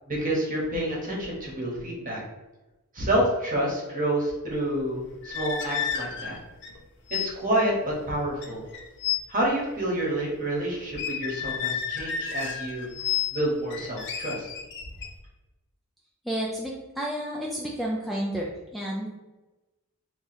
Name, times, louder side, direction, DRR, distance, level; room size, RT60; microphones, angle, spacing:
voice 1, 0.1-2.2 2.9-6.4 7.1-8.6 9.3-12.9 13.3-14.5, right 1 dB, 40° right, -3 dB, 1.0 m, -28 dB
sound 1, 5.1-6.8 7.1-7.3 7.6-7.8 8.4-9.2 10.9-13.4 13.7-15.1, left 8 dB, 55° left, 0.5 m, -31 dB
voice 2, 16.3-19.1, right 1 dB, ahead, -4 dB, 0.3 m, -31 dB
2.9 x 2.4 x 4.1 m, 1.1 s
head